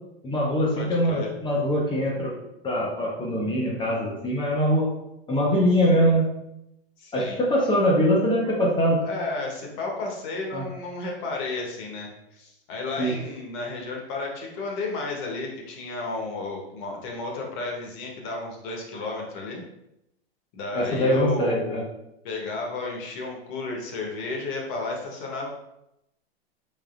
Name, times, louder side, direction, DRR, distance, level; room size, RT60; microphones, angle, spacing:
voice 1, 0.2-2.3 2.6-4.8 5.3-6.2 7.1-9.0 10.5-10.6 13.0-13.1 20.7-21.8, equal, 15° left, -3 dB, 0.6 m, -23 dB
voice 2, 0.7-1.3 5.9-6.1 7.0-7.4 9.0-19.6 20.5-21.9 22.2-25.5, left 3 dB, 50° left, 0 dB, 1.1 m, -32 dB
3.6 x 3.5 x 2.4 m, 0.86 s
hypercardioid pair, 125°, 31 cm